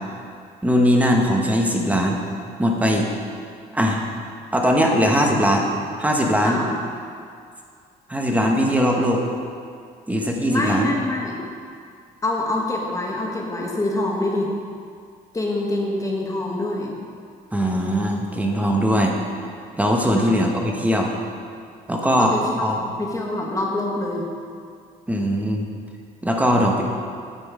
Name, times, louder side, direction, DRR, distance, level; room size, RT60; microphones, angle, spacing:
voice 1, 0.6-2.2 2.6-3.1 3.7-4.0 4.5-5.7 6.0-6.6 8.1-9.2 10.1-10.9 17.5-19.2 19.8-21.1 21.9-22.3 22.6-22.8 25.1-25.7 26.2-26.8, equal, 10° right, 1 dB, 1.1 m, -20 dB
voice 2, 6.4-6.7 10.5-11.4 12.2-14.5 15.3-16.9 20.1-20.4 22.2-24.3, left 2 dB, 20° left, -2 dB, 1.3 m, -25 dB
9.1 x 6.1 x 4.9 m, 2.3 s
cardioid pair, 110°, 17 cm